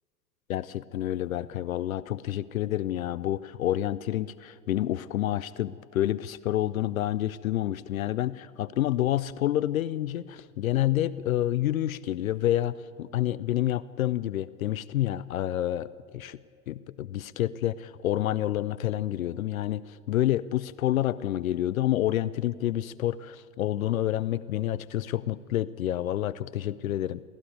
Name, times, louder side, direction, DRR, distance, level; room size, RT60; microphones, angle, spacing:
voice 1, 0.5-16.4 16.7-27.2, left 13 dB, 60° left, 18 dB, 0.6 m, -28 dB
22.5 x 15.5 x 9.4 m, 2.2 s
figure-of-eight pair, 85°, 46 cm